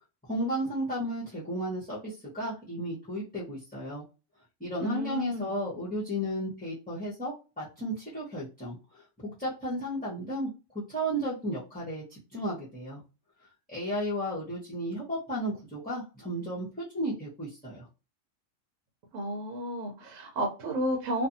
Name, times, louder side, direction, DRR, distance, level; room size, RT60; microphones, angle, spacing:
voice 1, 0.2-4.0 4.6-10.5 10.9-13.0 13.7-17.9, equal, 10° left, 0.7 m, -34 dB
voice 2, 4.8-5.5 19.1-21.3, equal, 75° right, 1.0 m, -32 dB
2.5 x 2.4 x 2.6 m
omnidirectional pair, 1.4 m